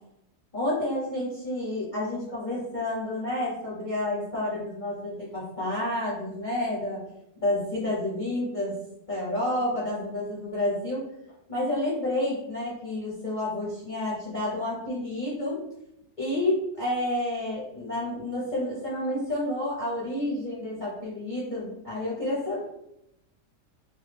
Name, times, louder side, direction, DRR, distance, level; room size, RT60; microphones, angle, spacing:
voice 1, 0.5-7.0 7.4-8.8 9.1-11.0 11.5-15.6 16.2-22.6, left 1 dB, 40° left, -8 dB, 0.7 m, -30 dB
3.1 x 2.2 x 3.3 m, 0.84 s
omnidirectional pair, 1.7 m